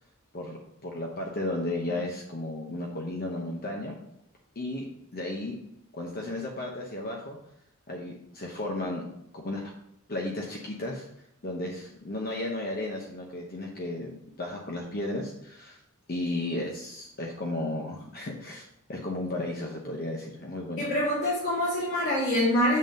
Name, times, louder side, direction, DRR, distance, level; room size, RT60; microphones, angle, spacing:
voice 1, 0.3-3.9 4.6-4.8 5.1-5.6 5.9-7.4 7.9-9.0 9.3-9.7 10.1-11.1 11.4-14.1 14.4-15.8 16.1-20.9, left 1 dB, 45° left, -1 dB, 0.9 m, -34 dB
voice 2, 20.8-22.8, left 1 dB, 75° left, -11 dB, 2.9 m, -25 dB
7.4 x 3.9 x 5.2 m, 0.80 s
head